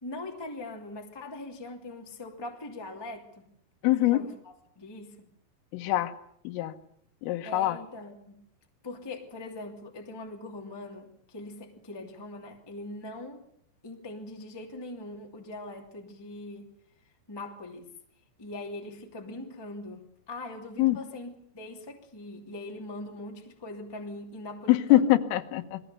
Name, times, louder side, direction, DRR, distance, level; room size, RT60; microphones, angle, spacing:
voice 1, 0.0-3.5 4.0-5.3 7.4-8.4 8.8-13.4 13.8-16.7 17.3-17.9 18.4-25.1, left 2 dB, 10° left, 2 dB, 1.1 m, -41 dB
voice 2, 3.8-4.2 5.7-6.1 6.5-6.7 7.2-7.8 20.8-21.0 24.7-25.8, left 15 dB, 85° left, 9 dB, 3.8 m, -23 dB
28.0 x 21.0 x 7.0 m, 0.70 s
omnidirectional pair, 5.8 m